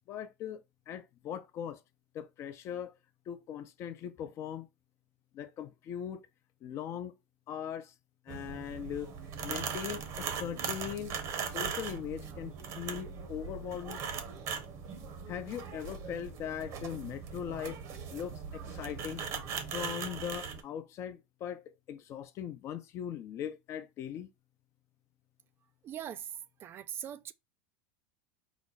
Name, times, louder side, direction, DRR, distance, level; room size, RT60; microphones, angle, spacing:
voice 1, 0.1-1.8 2.1-2.9 3.3-4.7 5.3-6.2 6.6-7.1 7.5-7.9 8.3-9.1 9.4-11.1 11.4-14.0 15.3-17.8 18.1-19.2 19.7-24.3, left 9 dB, 45° left, 0.6 m, -40 dB
sound 1, 8.3-20.6, right 6 dB, 50° right, 0.9 m, -40 dB
voice 2, 25.8-26.3 26.6-27.3, right 10 dB, 35° right, 0.3 m, -41 dB
4.9 x 2.1 x 4.0 m
hypercardioid pair, 105°, 7 cm